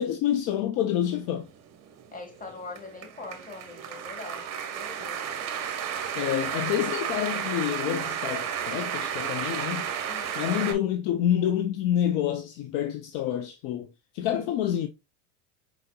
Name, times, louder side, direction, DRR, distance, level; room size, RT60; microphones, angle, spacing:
voice 1, 0.0-1.5 6.1-9.9 10.4-13.9 14.1-14.9, left 11 dB, 55° left, 0.7 m, -27 dB
sound 1, 1.5-10.7, right 8 dB, 40° right, 1.1 m, -33 dB
voice 2, 2.1-5.2 10.1-10.5, left 3 dB, 20° left, 1.6 m, -42 dB
4.9 x 3.9 x 2.3 m
supercardioid pair, 110°, 39 cm